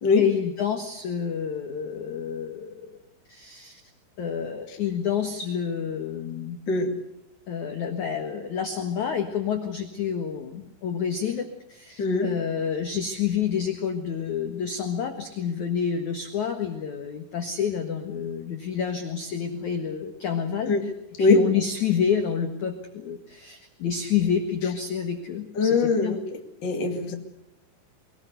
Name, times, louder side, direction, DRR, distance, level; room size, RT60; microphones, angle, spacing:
voice 1, 0.2-3.0 3.3-3.8 4.2-6.6 7.5-20.7 21.2-26.2, left 7 dB, 65° left, 5 dB, 2.0 m, -28 dB
voice 2, 12.0-12.3 20.7-20.9 21.2-21.4 25.5-26.2 26.6-27.1, left 3 dB, 35° left, 4 dB, 1.9 m, -22 dB
23.5 x 19.5 x 8.1 m, 0.88 s
omnidirectional pair, 5.7 m